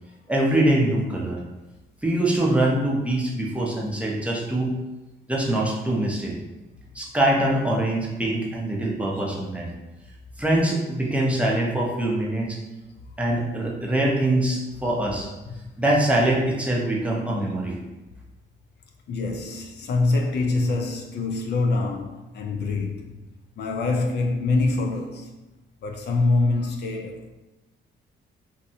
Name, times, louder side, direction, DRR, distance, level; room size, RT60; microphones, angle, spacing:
voice 1, 0.3-1.4 2.0-4.7 5.3-6.3 6.9-9.7 10.4-12.6 13.2-15.3 15.8-17.8, right 1 dB, 5° right, 0.6 m, -23 dB
voice 2, 19.1-23.1 23.6-25.3 25.8-27.3, left 3 dB, 60° left, 0.4 m, -25 dB
2.7 x 2.1 x 2.7 m
cardioid pair, 90°, 20 cm